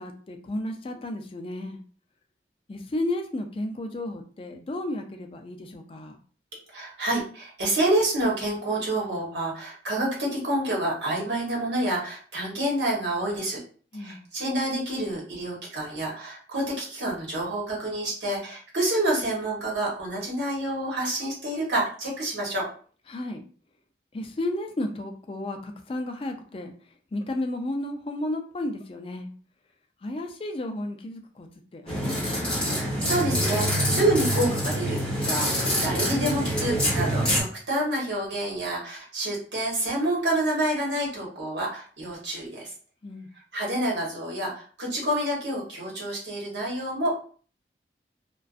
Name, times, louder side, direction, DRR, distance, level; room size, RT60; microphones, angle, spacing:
voice 1, 0.0-1.8 2.7-6.2 13.9-14.2 23.1-23.4 24.1-26.7 27.1-29.3 30.0-31.5 31.7-32.6 43.0-43.3, left 1 dB, 30° left, 5 dB, 0.3 m, -33 dB
voice 2, 6.7-13.6 14.0-22.7 32.7-42.7 43.5-47.3, right 1 dB, 80° right, -3 dB, 1.1 m, -28 dB
sound 1, 31.9-37.4, equal, 5° left, 0.9 m, -26 dB
2.5 x 2.2 x 2.4 m, 0.42 s
head